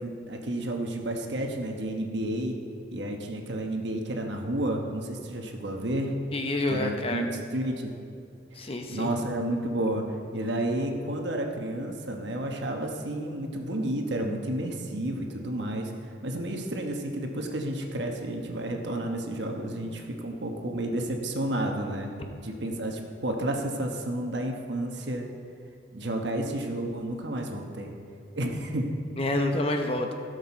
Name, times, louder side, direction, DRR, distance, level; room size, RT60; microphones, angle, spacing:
voice 1, 0.0-2.6 2.9-6.1 6.7-7.9 8.5-10.0 10.3-15.9 16.2-22.1 22.4-25.3 25.9-27.9 28.3-28.9, right 1 dB, 70° right, 2 dB, 1.2 m, -31 dB
voice 2, 6.3-7.3 8.6-9.1 29.2-30.1, left 2 dB, 30° left, 4 dB, 0.7 m, -28 dB
16.5 x 6.6 x 4.3 m, 2.6 s
head